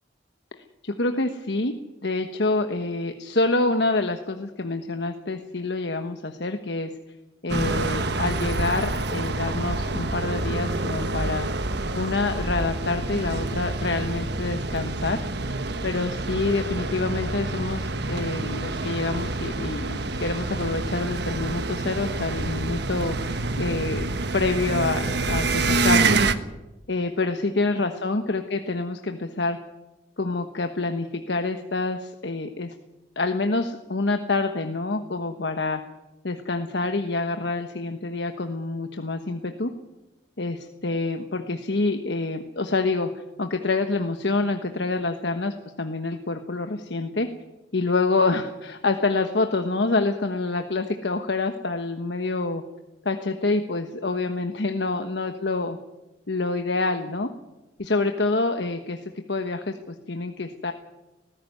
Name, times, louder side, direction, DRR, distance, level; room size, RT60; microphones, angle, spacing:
voice 1, 0.5-1.7 2.0-6.9 7.4-11.5 11.9-15.2 15.8-24.0 24.3-26.3 26.9-29.6 30.2-32.7 33.2-35.8 36.2-39.7 40.4-47.3 47.7-52.6 53.0-55.8 56.3-57.3 57.8-59.0 59.3-60.7, left 3 dB, 70° left, 6 dB, 1.2 m, -27 dB
sound 1, 7.5-26.3, right 3 dB, 65° right, 1.3 m, -27 dB
19.5 x 15.5 x 9.6 m, 1.0 s
head